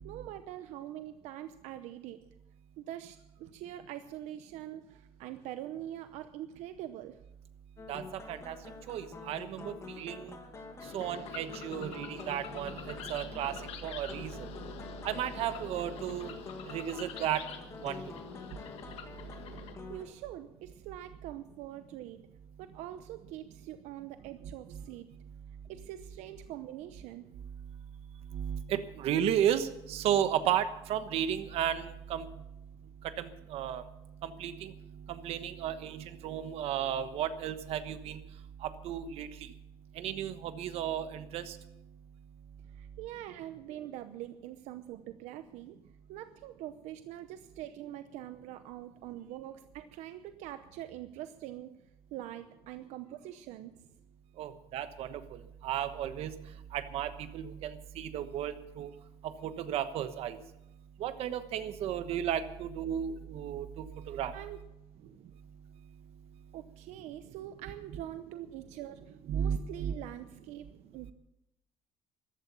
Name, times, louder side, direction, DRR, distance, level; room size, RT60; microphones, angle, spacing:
voice 1, 0.0-2.2 2.8-7.2 19.9-22.2 22.6-25.1 25.7-27.3 42.7-45.8 46.1-51.8 52.1-53.7 64.1-64.6 66.5-70.7 70.9-71.1, right 12 dB, 80° right, 10 dB, 0.8 m, -44 dB
sound 1, 7.8-20.0, left 4 dB, 25° left, 2.2 m, -47 dB
voice 2, 8.9-10.3 10.9-13.6 13.8-14.5 15.0-16.3 16.7-17.4 17.8-18.0 24.7-24.8 28.3-32.3 33.2-33.8 34.2-34.7 35.1-38.2 38.8-39.3 40.0-41.6 54.4-55.2 55.6-56.3 56.7-58.9 59.2-60.4 61.0-64.3 69.3-69.9, right 10 dB, 60° right, 11 dB, 1.2 m, -34 dB
sound 2, 10.8-19.8, left 7 dB, 60° left, 1.7 m, -46 dB
14.5 x 12.0 x 7.0 m, 0.87 s
cardioid pair, 165°, 12 cm